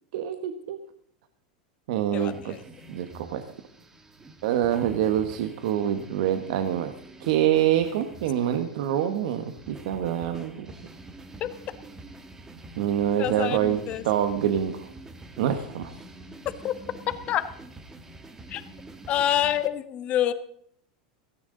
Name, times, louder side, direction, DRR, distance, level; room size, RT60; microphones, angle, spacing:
voice 1, 0.1-0.8 1.9-2.5 2.9-3.4 4.4-6.9 7.2-10.7 12.8-14.9 15.4-15.9, right 10 dB, 65° right, 8 dB, 1.3 m, -26 dB
voice 2, 2.1-2.6 11.4-11.5 13.2-14.0 16.6-16.7 17.3-17.5 18.5-18.6 19.1-20.3, left 11 dB, 30° left, 10 dB, 1.2 m, -26 dB
sound 1, 2.2-19.7, right 2 dB, 10° right, 1.4 m, -46 dB
17.0 x 16.5 x 4.0 m, 0.67 s
supercardioid pair, 155°, 4 cm